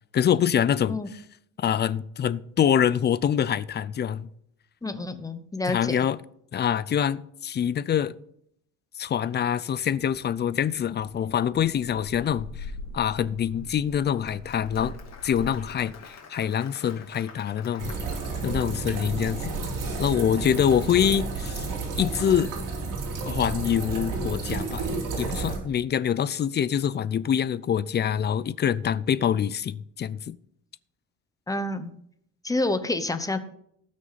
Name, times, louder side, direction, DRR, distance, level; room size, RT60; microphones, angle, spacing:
voice 1, 0.1-1.0 1.6-4.3 5.7-6.2 6.5-8.2 9.0-12.7 12.9-17.9 18.4-19.5 20.0-21.7 22.0-22.5 23.2-24.9 25.2-30.4, left 9 dB, 30° left, 0.5 m, -25 dB
voice 2, 4.8-6.0 31.5-31.9 32.4-33.4, left 2 dB, 10° left, 0.8 m, -28 dB
sound 1, 9.7-16.1, left 2 dB, 80° left, 3.1 m, -43 dB
Applause, 13.9-19.0, left 6 dB, 50° left, 2.5 m, -48 dB
sound 2, 17.8-25.6, right 4 dB, 70° right, 4.0 m, -31 dB
18.5 x 6.5 x 4.1 m
cardioid pair, 145°, 33 cm